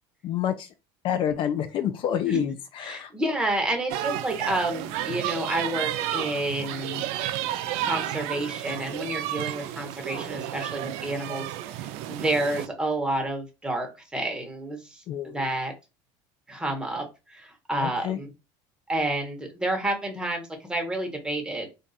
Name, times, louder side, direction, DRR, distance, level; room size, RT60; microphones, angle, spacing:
voice 1, 0.2-0.7 1.0-3.1 15.1-15.5 17.8-18.2, left 9 dB, 50° left, 9 dB, 0.4 m, -28 dB
voice 2, 2.8-7.0 7.7-11.5 11.7-15.0 15.3-15.7 16.5-18.3 18.9-21.7, right 1 dB, 10° right, 3 dB, 1.1 m, -29 dB
sound 1, 3.9-12.7, right 12 dB, 70° right, 0.4 m, -32 dB
2.4 x 2.4 x 4.0 m, 0.27 s
supercardioid pair, 120°, 11 cm